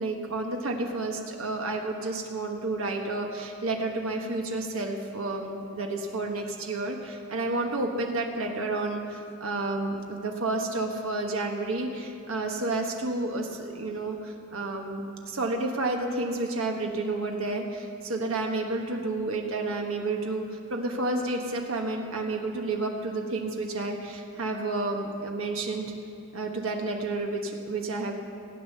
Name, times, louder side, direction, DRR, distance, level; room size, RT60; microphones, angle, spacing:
voice 1, 0.0-25.9 26.3-28.1, right 2 dB, 75° right, 2 dB, 1.3 m, -30 dB
17.0 x 9.2 x 6.7 m, 2.7 s
head